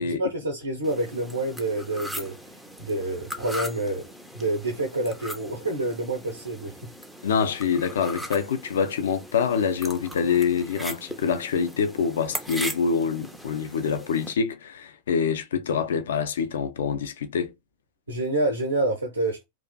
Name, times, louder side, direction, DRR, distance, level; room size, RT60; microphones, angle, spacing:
voice 1, 0.0-2.4 2.8-4.1 4.3-6.9 18.1-19.4, right 2 dB, 75° right, 0.6 m, -28 dB
sound 1, 0.8-14.3, equal, ahead, 0.4 m, -39 dB
voice 2, 7.2-17.5, left 6 dB, 60° left, 0.4 m, -25 dB
2.4 x 2.4 x 2.2 m
figure-of-eight pair, 90°, 0 cm